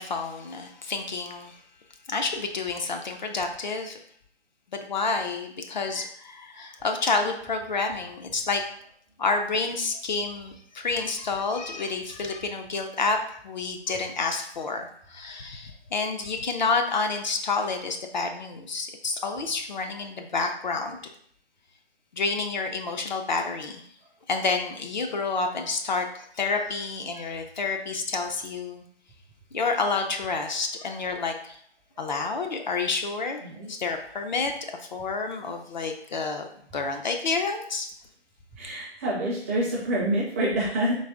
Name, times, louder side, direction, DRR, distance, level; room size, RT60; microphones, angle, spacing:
voice 1, 0.0-1.6 2.1-4.0 4.7-8.6 9.2-21.0 22.1-23.8 24.3-28.8 29.5-31.6 32.0-34.5 34.9-36.5 36.7-37.9, left 4 dB, 45° left, 4 dB, 0.5 m, -29 dB
voice 2, 38.6-41.0, right 1 dB, 15° right, -5 dB, 0.5 m, -27 dB
3.9 x 2.9 x 3.6 m, 0.63 s
figure-of-eight pair, 140°, 33 cm